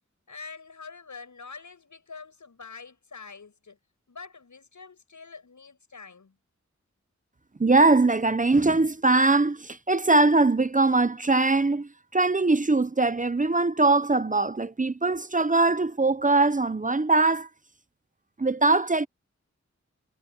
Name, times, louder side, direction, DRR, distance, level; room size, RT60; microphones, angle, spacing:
voice 1, 0.3-3.8 4.1-6.4, left 4 dB, 90° left, 7.7 m, -45 dB
voice 2, 7.6-17.5 18.4-19.1, right 3 dB, 25° right, 0.7 m, -22 dB
wide cardioid pair, 65°, 29 cm